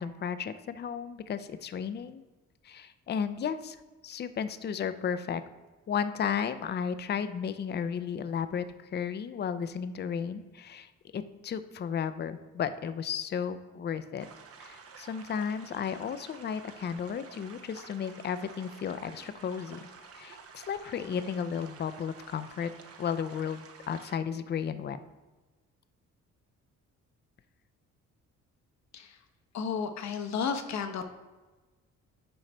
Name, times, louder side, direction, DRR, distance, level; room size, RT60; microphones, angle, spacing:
voice 1, 0.0-2.2 2.6-3.8 4.0-5.4 5.9-14.3 14.6-19.9 20.2-22.7 23.0-25.0, left 7 dB, 35° left, 12 dB, 0.5 m, -34 dB
sound 1, 14.2-24.2, right 5 dB, 50° right, 0.8 m, -51 dB
voice 2, 29.5-31.0, left 6 dB, 65° left, 6 dB, 0.9 m, -32 dB
9.0 x 3.2 x 5.3 m, 1.2 s
cardioid pair, 90°, 30 cm